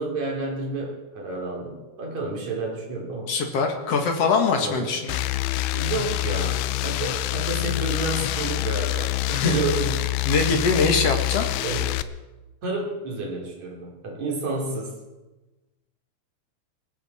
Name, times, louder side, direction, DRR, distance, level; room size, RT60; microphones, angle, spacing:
voice 1, 0.0-3.3 4.6-5.0 5.7-10.1 10.4-10.5 11.6-12.0 12.6-15.0, right 2 dB, 45° right, -1 dB, 4.2 m, -30 dB
voice 2, 3.3-5.2 9.3-9.6 10.3-11.5, left 4 dB, 50° left, 4 dB, 2.1 m, -23 dB
sound 1, 5.1-12.0, left 15 dB, 80° left, 2.6 m, -26 dB
19.5 x 16.5 x 4.3 m, 1.1 s
omnidirectional pair, 4.7 m